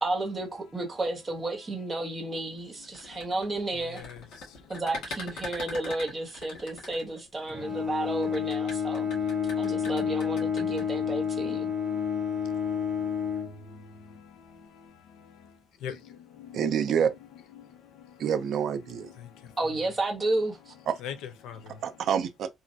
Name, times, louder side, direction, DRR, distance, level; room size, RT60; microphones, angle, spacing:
voice 1, 0.0-4.0 4.7-9.1 9.6-11.7 19.6-20.7, right 2 dB, 15° right, 0.8 m, -32 dB
sound 1, 2.8-7.5 8.2-10.8, left 2 dB, 65° left, 1.6 m, -41 dB
Bowed string instrument, 7.5-14.2, left 7 dB, 20° left, 1.7 m, -30 dB
voice 2, 9.0-10.0 10.4-10.5 11.0-11.2 11.5-11.7 15.8-16.0 16.4-17.0 18.4-18.5 21.0-21.6, left 8 dB, 85° left, 0.5 m, -41 dB
voice 3, 16.5-17.1 18.2-19.1 20.9-21.0 21.8-22.5, right 8 dB, 50° right, 0.3 m, -27 dB
3.0 x 2.4 x 2.6 m
cardioid pair, 175°, 0 cm